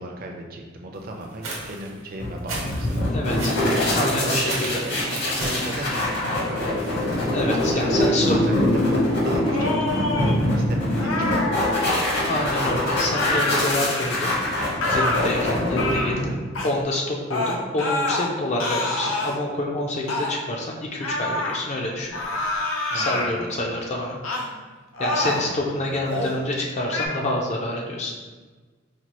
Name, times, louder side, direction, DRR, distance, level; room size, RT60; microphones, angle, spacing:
voice 1, 0.0-3.1 3.7-7.2 7.7-12.7 22.9-23.8 25.2-26.3, right 1 dB, 45° right, 2 dB, 0.5 m, -35 dB
sound 1, 1.2-7.0, right 2 dB, 85° right, 0.9 m, -36 dB
sound 2, 2.2-16.6, left 1 dB, 55° left, 0.9 m, -24 dB
voice 2, 3.1-3.6 3.9-4.7 7.3-8.3 12.3-14.3 14.9-22.1 22.9-24.2 25.0-28.1, left 1 dB, 35° left, 0 dB, 0.4 m, -27 dB
sound 3, 9.4-10.3 11.0-12.1 13.1-14.4 14.8-15.2 15.7-16.2 16.6-16.7 17.3-18.3 18.6-19.3 20.1-20.3 21.0-21.6 22.1-23.3 24.2-24.5 24.9-25.5 26.0-26.4 26.9-27.1, left 2 dB, 85° left, 0.6 m, -26 dB
4.3 x 2.2 x 2.9 m, 1.4 s
head